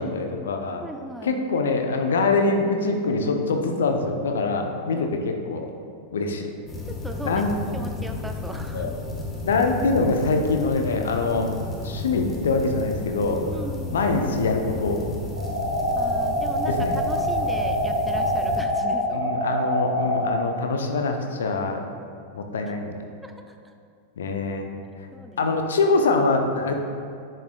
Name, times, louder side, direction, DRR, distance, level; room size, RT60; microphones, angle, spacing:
voice 1, 0.0-0.8 1.2-5.7 6.1-6.5 7.2-7.5 8.7-8.9 9.4-11.5 11.8-13.4 13.9-15.1 16.6-16.9 19.1-21.8 22.3-22.9 24.2-24.7 25.4-26.7, left 3 dB, 65° left, 4 dB, 0.6 m, -24 dB
voice 2, 0.8-1.3 4.8-5.1 6.8-7.5 7.7-9.0 13.4-14.0 16.0-19.3 23.2-23.7 25.1-25.4, right 1 dB, 5° right, 4 dB, 0.5 m, -38 dB
sound 1, 6.7-18.6, left 3 dB, 20° left, 1.0 m, -33 dB
sound 2, 15.4-20.4, equal, 70° right, 0.9 m, -25 dB
10.0 x 6.5 x 2.3 m, 2.4 s
figure-of-eight pair, 90°, 0 cm